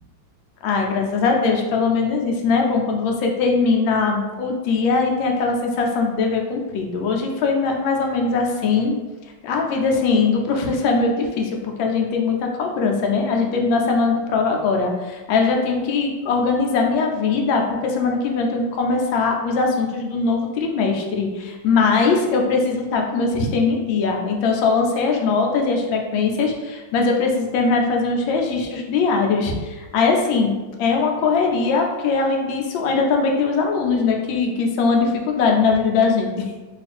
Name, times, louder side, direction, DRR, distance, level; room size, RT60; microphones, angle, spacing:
voice 1, 0.6-9.0 9.4-36.5, left 4 dB, 80° left, 1 dB, 1.3 m, -21 dB
3.1 x 2.5 x 4.2 m, 1.2 s
omnidirectional pair, 2.2 m